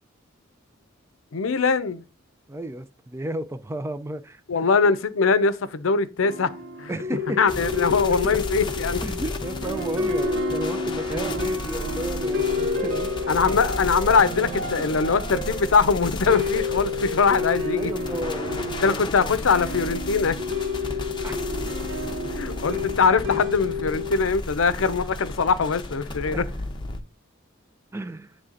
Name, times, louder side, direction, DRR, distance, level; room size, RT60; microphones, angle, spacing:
voice 1, 1.3-2.0 4.5-6.5 6.8-6.9 7.4-9.0 13.3-17.9 18.8-20.4 22.3-26.4, left 5 dB, 80° left, 0.6 m, -22 dB
voice 2, 2.5-4.4 6.9-7.4 7.9-8.0 8.2-8.4 9.0-13.4 17.7-19.0 21.2-21.3 25.9-26.5 27.9-28.3, right 1 dB, 15° right, 0.4 m, -33 dB
sound 1, 6.2-24.3, left 3 dB, 80° right, 1.0 m, -30 dB
sound 2, 7.5-27.0, left 2 dB, 25° left, 0.7 m, -34 dB
9.0 x 3.3 x 3.8 m
head